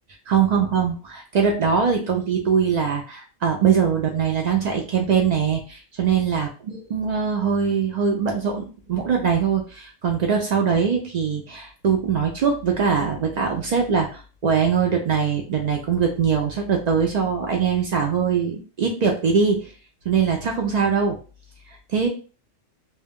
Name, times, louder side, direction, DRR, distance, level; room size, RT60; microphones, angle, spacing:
voice 1, 0.3-19.7 20.1-21.2 21.9-22.1, right 6 dB, 90° right, 2 dB, 0.3 m, -22 dB
2.2 x 2.2 x 3.4 m, 0.36 s
omnidirectional pair, 1.3 m